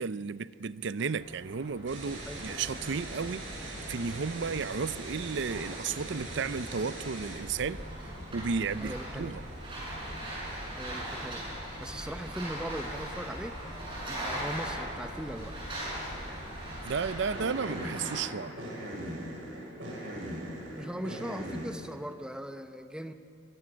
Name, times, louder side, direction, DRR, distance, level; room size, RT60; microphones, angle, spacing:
voice 1, 0.0-7.8 8.3-9.4 16.8-18.5, right 5 dB, 65° right, 16 dB, 0.5 m, -33 dB
sound 1, 1.2-18.2, right 1 dB, 25° right, 7.7 m, -42 dB
sound 2, 1.9-21.7, right 1 dB, 80° right, 7.0 m, -42 dB
voice 2, 2.3-2.8 8.8-9.3 10.7-13.6 14.0-15.5 20.7-23.1, equal, 5° right, 8 dB, 0.9 m, -39 dB
24.0 x 22.0 x 6.3 m, 2.6 s
head